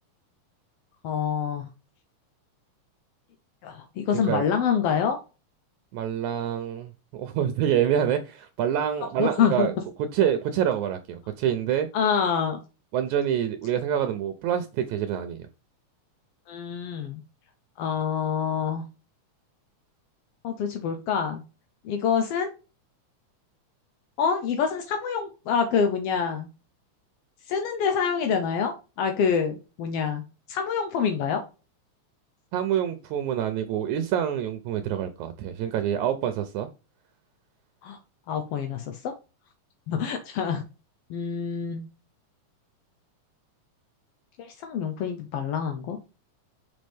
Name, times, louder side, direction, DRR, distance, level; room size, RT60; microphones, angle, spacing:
voice 1, 1.0-1.7 3.6-5.2 9.2-9.7 11.9-12.6 16.5-17.2 17.8-18.8 20.4-21.4 21.8-22.5 24.2-26.5 27.5-30.2 30.5-31.4 37.8-38.0 38.3-39.1 39.9-40.6 41.1-41.9 44.4-46.0, left 7 dB, 70° left, 1.5 m, -26 dB
voice 2, 4.1-4.4 5.9-9.7 10.1-11.9 12.9-15.5 32.5-36.7, right 9 dB, 75° right, 2.0 m, -26 dB
5.9 x 5.3 x 3.4 m
omnidirectional pair, 3.6 m